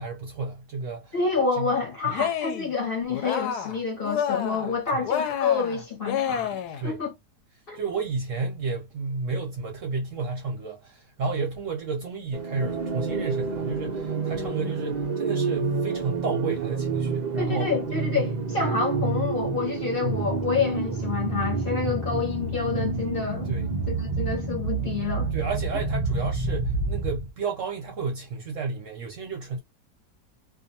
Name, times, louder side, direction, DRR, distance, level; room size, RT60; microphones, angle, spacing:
voice 1, 0.0-1.2 1.6-1.7 2.0-2.1 4.9-5.1 6.8-7.0 7.7-17.7 18.1-18.3 20.0-20.2 23.5-23.7 25.3-29.6, right 4 dB, 65° right, 0.8 m, -32 dB
voice 2, 1.1-7.1 7.7-7.8 17.4-23.5 23.9-25.3, left 5 dB, 45° left, 0.9 m, -28 dB
Cheering, 2.1-2.7 3.1-4.7 5.1-6.8, left 8 dB, 75° left, 1.1 m, -29 dB
sound 1, 12.3-27.3, right 4 dB, 80° right, 0.3 m, -28 dB
2.6 x 2.4 x 2.7 m
omnidirectional pair, 1.8 m